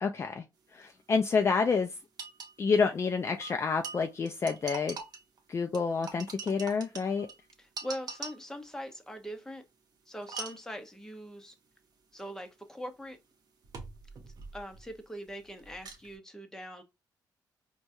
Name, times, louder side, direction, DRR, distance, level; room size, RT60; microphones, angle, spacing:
voice 1, 0.0-0.4 0.7-1.9 2.6-5.0 5.5-7.3, left 5 dB, 35° left, 0.4 m, -28 dB
sound 1, 1.1-1.2 1.4-1.5 2.2-2.5 3.4-5.4 5.7-8.6 10.2-10.7 12.2-12.3 13.6-15.0 15.3-16.1, right 4 dB, 60° right, 0.8 m, -43 dB
voice 2, 7.6-9.6 10.1-11.5 12.1-13.2 14.5-16.8, equal, 5° left, 0.8 m, -42 dB
4.5 x 2.2 x 2.7 m
cardioid pair, 95°, 8 cm